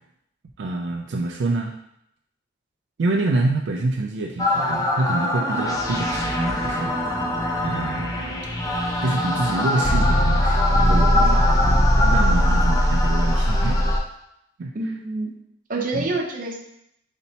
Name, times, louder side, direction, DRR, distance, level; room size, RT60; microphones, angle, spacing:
voice 1, 0.6-1.8 3.0-6.9 7.6-8.1 9.0-13.8 14.6-14.7 15.9-16.1, right 2 dB, 75° right, 1 dB, 0.4 m, -26 dB
sound 1, 4.4-14.0, left 1 dB, 20° left, 0.5 m, -20 dB
voice 2, 14.7-15.3 15.7-16.6, right 2 dB, 45° right, 1 dB, 0.7 m, -28 dB
4.3 x 4.1 x 2.8 m, 0.77 s
head